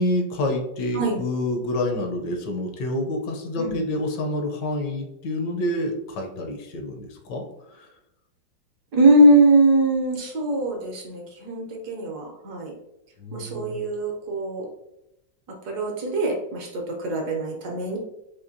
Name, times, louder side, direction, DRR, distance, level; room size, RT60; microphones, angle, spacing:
voice 1, 0.0-7.9 13.2-13.8, left 1 dB, 75° left, 2 dB, 1.2 m, -28 dB
voice 2, 8.9-12.8 13.3-14.7 15.5-18.0, right 1 dB, 70° right, 0 dB, 1.1 m, -21 dB
4.3 x 2.6 x 2.5 m, 0.87 s
omnidirectional pair, 2.1 m